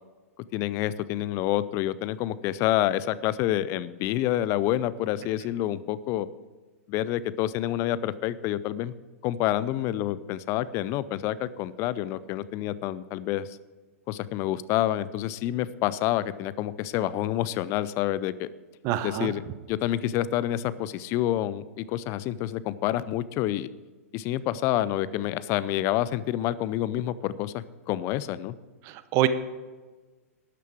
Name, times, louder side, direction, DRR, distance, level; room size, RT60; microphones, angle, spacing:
voice 1, 0.5-6.3 6.9-8.9 9.2-13.6 14.1-18.5 19.0-19.4 19.7-23.7 24.1-28.6, left 13 dB, 35° left, 17 dB, 0.5 m, -28 dB
voice 2, 18.8-19.3 28.8-29.3, right 14 dB, 35° right, 13 dB, 0.8 m, -25 dB
13.0 x 9.3 x 4.6 m, 1.3 s
figure-of-eight pair, 110°, 8 cm